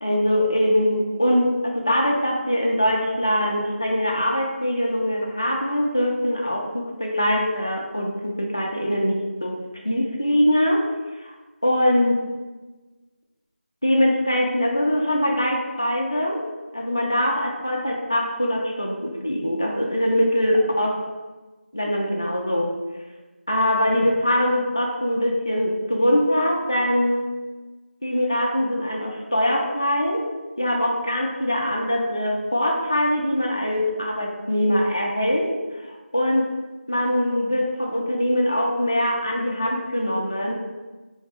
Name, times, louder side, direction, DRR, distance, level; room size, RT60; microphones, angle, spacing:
voice 1, 0.0-10.8 11.6-12.2 13.8-16.4 16.7-21.0 21.7-22.7 23.5-27.3 28.0-30.2 30.6-35.5 35.9-36.5 36.9-40.5, equal, 25° left, 0 dB, 0.3 m, -22 dB
4.1 x 2.5 x 3.3 m, 1.2 s
figure-of-eight pair, 180°, 6 cm